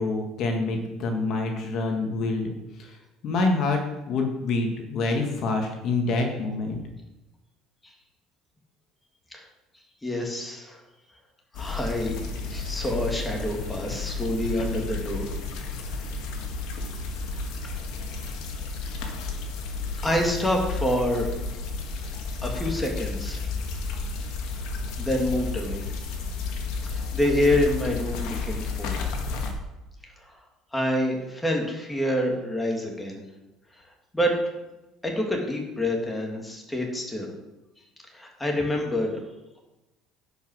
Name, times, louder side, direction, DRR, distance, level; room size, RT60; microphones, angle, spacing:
voice 1, 0.0-2.4 2.8-3.0 3.2-3.8 4.1-6.8, left 3 dB, 50° left, 3 dB, 1.6 m, -26 dB
voice 2, 10.0-10.8 11.5-12.2 12.5-15.3 18.1-18.2 20.0-21.3 22.4-23.5 25.0-25.8 26.8-29.0 30.7-33.2 34.1-34.3 35.0-37.3 38.1-39.1, left 1 dB, 10° left, 1 dB, 2.1 m, -27 dB
sound 1, 11.5-29.5, left 4 dB, 70° left, 1.7 m, -32 dB
10.0 x 5.7 x 6.3 m, 1.0 s
cardioid pair, 135°, 0 cm